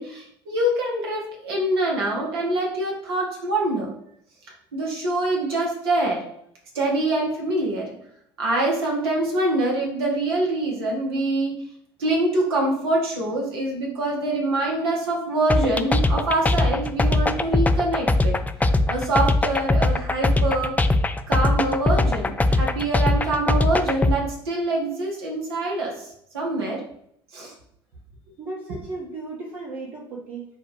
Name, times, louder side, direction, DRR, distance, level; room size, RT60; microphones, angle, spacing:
voice 1, 0.0-3.9 4.7-6.3 6.7-8.0 8.4-11.6 12.0-18.4 18.9-20.8 21.3-26.1 26.3-26.8 27.3-27.5, right 2 dB, 80° right, -1 dB, 1.1 m, -25 dB
sound 1, 15.5-24.2, left 2 dB, 10° left, 0.4 m, -20 dB
voice 2, 28.4-30.5, right 3 dB, 60° right, -6 dB, 1.6 m, -35 dB
4.1 x 2.4 x 4.8 m, 0.70 s
hypercardioid pair, 65°, 13 cm